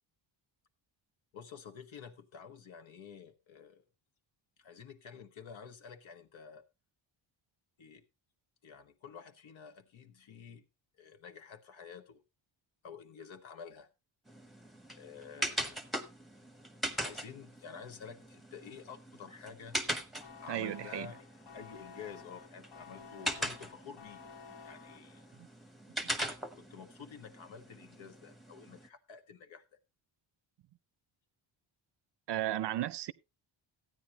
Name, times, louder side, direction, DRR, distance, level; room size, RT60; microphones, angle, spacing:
voice 1, 1.3-3.8 4.6-6.6 7.8-8.0 8.6-10.6 10.9-12.2 12.8-13.9 14.9-16.0 17.0-19.8 20.4-21.2 21.5-24.2 24.6-25.2 26.5-29.6, left 6 dB, 75° left, 1.4 m, -50 dB
sound 1, 14.3-28.9, right 1 dB, ahead, 0.9 m, -41 dB
sound 2, 20.2-25.5, left 6 dB, 60° left, 1.1 m, -53 dB
voice 2, 20.5-21.1 25.4-25.5 32.3-33.1, right 13 dB, 60° right, 0.6 m, -34 dB
15.0 x 9.4 x 2.9 m
wide cardioid pair, 175°, 46 cm